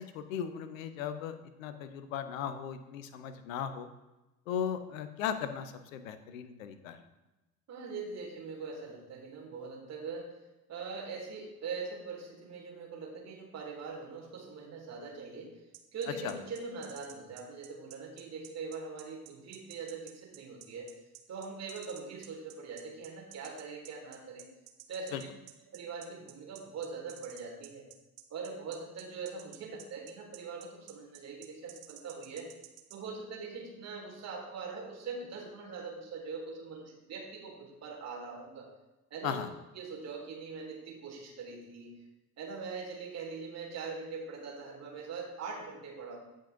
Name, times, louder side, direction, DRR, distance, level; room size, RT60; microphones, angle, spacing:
voice 1, 0.0-3.9 4.5-7.0 16.2-16.3 25.1-25.2 39.2-39.5, left 8 dB, 60° left, 10 dB, 0.9 m, -37 dB
voice 2, 7.7-10.3 10.7-15.5 15.9-20.9 21.3-24.5 24.9-25.3 25.7-27.8 28.3-32.5 32.9-38.7 39.1-39.4 39.7-41.9 42.4-46.2, right 4 dB, 35° right, 0 dB, 2.5 m, -42 dB
sound 1, 15.7-33.0, right 14 dB, 55° right, 0.9 m, -52 dB
16.0 x 5.3 x 2.6 m, 1.0 s
figure-of-eight pair, 75°, 46 cm